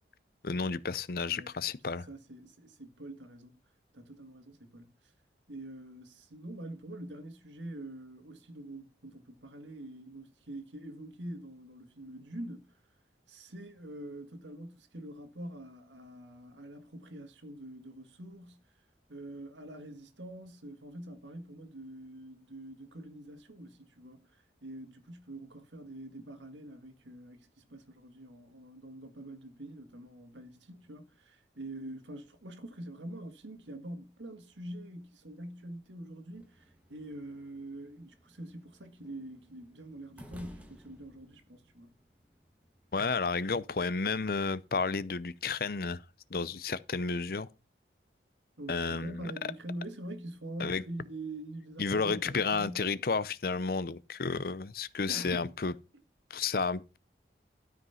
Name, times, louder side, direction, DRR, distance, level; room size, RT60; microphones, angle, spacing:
voice 1, 0.4-2.1 42.9-46.0 46.3-47.5 48.7-49.3 50.6-50.8 51.8-55.7 56.3-57.0, left 4 dB, 55° left, 0.6 m, -32 dB
voice 2, 2.0-3.6 3.9-4.9 5.5-12.8 13.3-18.6 19.1-41.9 48.6-52.9 55.1-55.5, right 1 dB, 90° right, 1.8 m, -45 dB
sound 1, 36.3-43.0, equal, 10° right, 1.4 m, -56 dB
12.5 x 5.2 x 5.7 m
head